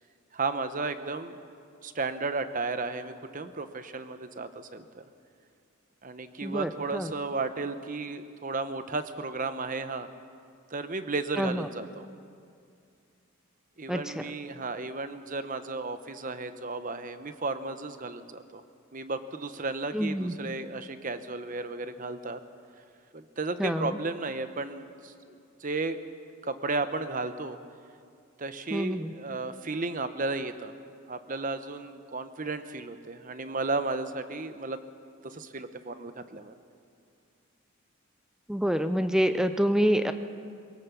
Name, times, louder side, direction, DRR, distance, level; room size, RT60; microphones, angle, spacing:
voice 1, 0.3-1.4 1.8-5.0 6.0-10.1 10.7-12.1 13.8-18.6 18.9-22.4 23.1-25.1 25.6-26.0 26.4-27.6 28.4-30.7 31.1-34.8 35.2-36.5, right 3 dB, 40° right, 10 dB, 0.9 m, -34 dB
voice 2, 6.4-7.1 11.4-11.7 13.9-14.3 19.9-20.6 23.6-24.0 28.7-29.1 38.5-40.1, equal, 5° right, 9 dB, 0.6 m, -27 dB
23.0 x 17.0 x 7.1 m, 2.4 s
head